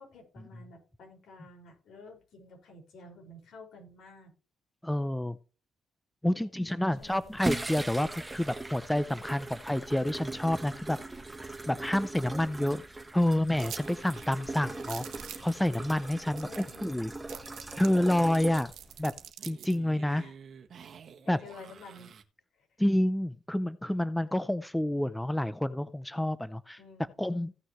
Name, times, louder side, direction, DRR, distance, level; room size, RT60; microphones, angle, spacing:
voice 1, 0.0-4.3 6.3-7.3 16.5-16.9 20.1-20.3 21.2-22.1 22.5-22.7 26.8-27.4, left 3 dB, 70° left, 5.4 m, -51 dB
voice 2, 4.8-5.4 6.2-11.0 11.4-12.8 13.1-15.1 15.4-17.1 17.8-18.7 19.0-19.1 19.4-20.2 21.3-21.4 22.8-26.8 27.2-27.5, left 1 dB, 5° left, 0.5 m, -28 dB
sound 1, 7.0-19.3, right 2 dB, 15° right, 1.3 m, -40 dB
sound 2, 13.6-16.9 19.4-22.2, right 7 dB, 55° right, 1.4 m, -52 dB
sound 3, 13.6-13.9 14.2-14.3 14.8-15.5 16.1-16.2 16.4-16.9 17.3-19.8, right 11 dB, 80° right, 1.3 m, -44 dB
16.0 x 6.2 x 3.1 m
cardioid pair, 90°, 0 cm